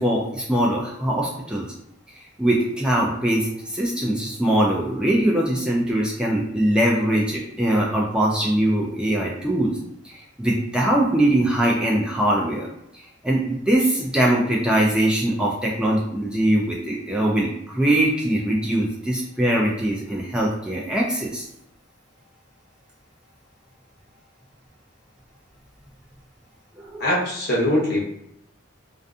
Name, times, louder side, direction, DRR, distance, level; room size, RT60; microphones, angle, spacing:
voice 1, 0.0-1.7 2.2-9.8 10.0-12.7 12.9-21.4 26.8-27.1, right 1 dB, 5° right, -3 dB, 0.3 m, -22 dB
voice 2, 27.0-28.0, left 1 dB, 55° left, -4 dB, 0.8 m, -22 dB
2.5 x 2.5 x 2.3 m, 0.77 s
head